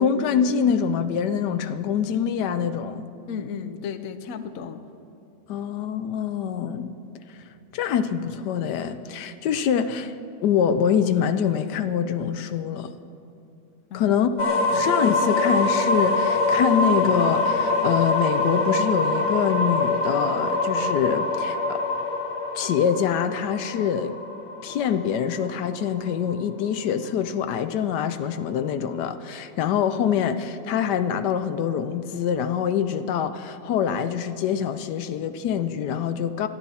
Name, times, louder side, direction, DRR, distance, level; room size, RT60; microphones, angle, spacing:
voice 1, 0.0-3.1 5.5-7.0 7.3-7.4 7.7-10.2 10.4-12.9 13.9-14.3 14.7-21.8 22.5-24.2 24.6-36.5, left 8 dB, 85° left, 10 dB, 1.3 m, -25 dB
voice 2, 3.3-4.8 13.9-14.1 14.7-14.9, left 7 dB, 60° left, 9 dB, 1.2 m, -35 dB
sound 1, 14.4-26.2, left 2 dB, 45° left, 1.4 m, -24 dB
21.5 x 14.5 x 4.2 m, 2.7 s
omnidirectional pair, 1.8 m